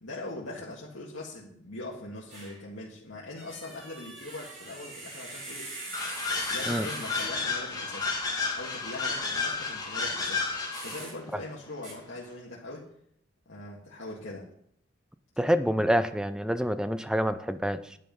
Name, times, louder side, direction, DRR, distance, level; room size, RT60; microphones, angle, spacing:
voice 1, 0.0-5.8 6.5-8.1 8.5-10.4 10.8-12.9 13.5-14.5, left 2 dB, 90° left, -5 dB, 1.9 m, -41 dB
sound 1, 2.3-2.6 3.3-7.6 10.7-11.2 11.8-11.9, right 2 dB, 40° right, 5.4 m, -42 dB
sound 2, 5.9-11.1, left 4 dB, 20° left, 2.4 m, -31 dB
voice 2, 15.4-18.0, equal, 5° right, 11 dB, 0.5 m, -27 dB
10.5 x 9.0 x 5.4 m, 0.68 s
head